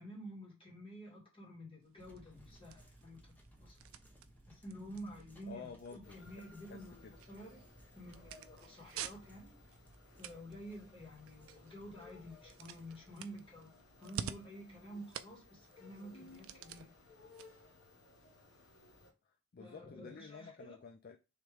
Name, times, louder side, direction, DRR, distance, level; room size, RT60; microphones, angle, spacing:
voice 1, 0.0-3.3 3.6-3.8 4.5-7.6 8.0-9.6 10.2-13.7 14.0-16.9 19.6-20.8, equal, 25° left, 1.8 m, -50 dB
sound 1, 1.8-18.8, right 8 dB, 65° right, 0.4 m, -51 dB
sound 2, 2.0-16.6, right 1 dB, 10° left, 0.9 m, -63 dB
voice 2, 5.5-6.4 6.7-7.2 19.2-21.2, left 5 dB, 45° left, 0.4 m, -51 dB
sound 3, 6.0-19.1, left 3 dB, 65° left, 1.1 m, -61 dB
3.6 x 3.0 x 4.8 m
head